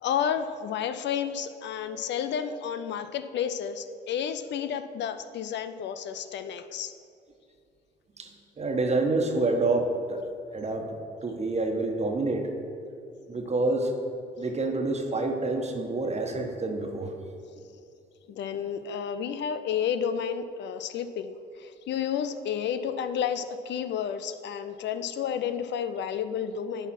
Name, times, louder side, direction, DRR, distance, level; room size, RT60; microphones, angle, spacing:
voice 1, 0.0-6.9 18.3-26.9, left 8 dB, 60° left, 10 dB, 0.5 m, -31 dB
voice 2, 8.6-10.2 10.5-10.9 11.2-12.5 13.3-13.9 14.4-17.3, right 2 dB, 30° right, 3 dB, 1.4 m, -27 dB
10.5 x 4.1 x 5.8 m, 2.5 s
supercardioid pair, 60°, 21 cm